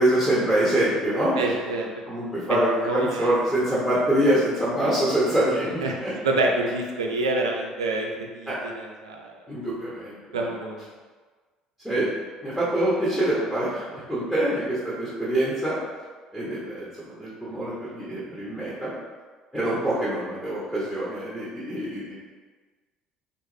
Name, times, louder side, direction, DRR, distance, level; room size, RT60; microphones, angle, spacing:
voice 1, 0.0-1.6 2.1-6.1 8.5-8.6 9.5-10.5 11.8-12.1 12.4-15.8 16.3-19.0 19.5-22.2, right 1 dB, 5° left, -10 dB, 1.1 m, -25 dB
voice 2, 1.4-1.9 2.8-3.3 5.8-9.3 10.3-10.8, right 2 dB, 80° right, 1 dB, 0.4 m, -27 dB
3.5 x 2.3 x 3.2 m, 1.4 s
figure-of-eight pair, 55°, 3 cm